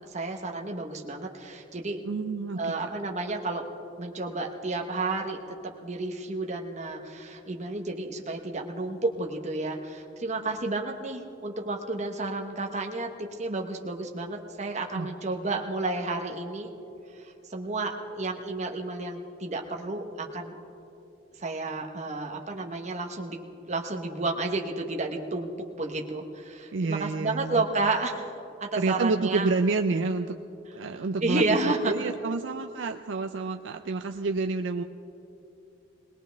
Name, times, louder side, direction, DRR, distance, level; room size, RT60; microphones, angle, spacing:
voice 1, 0.1-2.0 2.6-3.7 4.0-5.6 5.8-16.7 17.2-20.6 21.4-23.4 23.7-25.5 25.8-28.3 28.6-29.5 31.2-31.9, right 2 dB, 40° right, 2 dB, 1.1 m, -31 dB
voice 2, 2.0-2.8 14.9-15.1 26.7-27.6 28.8-30.4 30.7-34.8, right 3 dB, 85° right, 6 dB, 0.5 m, -29 dB
20.0 x 20.0 x 3.4 m, 2.7 s
head